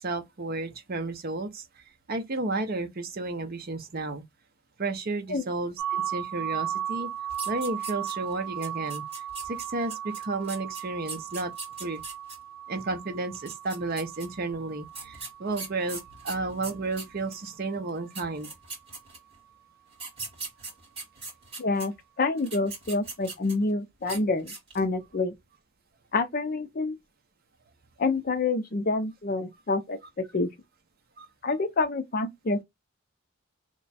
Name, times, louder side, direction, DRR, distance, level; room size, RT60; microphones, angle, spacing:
voice 1, 0.0-1.6 2.1-4.2 4.8-7.1 7.5-9.0 9.4-11.5 11.8-12.0 12.7-18.5 31.2-31.3, right 3 dB, 45° right, 0.6 m, -32 dB
sound 1, 5.8-17.5, right 9 dB, 10° right, 0.7 m, -37 dB
sound 2, 7.3-8.3 8.6-12.4 13.3-14.3 14.9-17.4 17.9-18.0 18.1-19.4 19.9-21.9 22.4-23.7 24.0-24.2 24.5-24.9, right 3 dB, 25° right, 1.9 m, -40 dB
voice 2, 21.6-25.3 26.1-26.9 28.0-30.5 31.4-32.6, left 3 dB, 45° left, 0.5 m, -27 dB
3.0 x 2.2 x 4.0 m
head